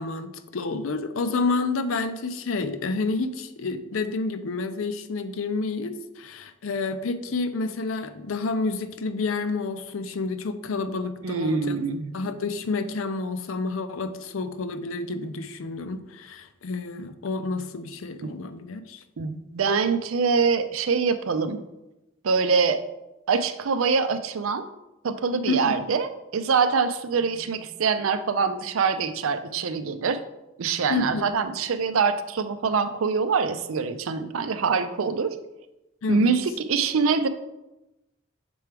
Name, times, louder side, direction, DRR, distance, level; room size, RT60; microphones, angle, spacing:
voice 1, 0.0-11.7 12.1-19.0 25.4-25.7 30.9-31.3 36.0-36.3, left 3 dB, 85° left, 10 dB, 0.5 m, -29 dB
voice 2, 11.2-12.1 18.2-18.3 19.2-21.6 22.2-22.8 23.3-24.6 25.0-30.2 30.6-35.4 36.1-37.3, right 5 dB, 90° right, 11 dB, 0.5 m, -24 dB
6.9 x 4.5 x 3.4 m, 0.96 s
head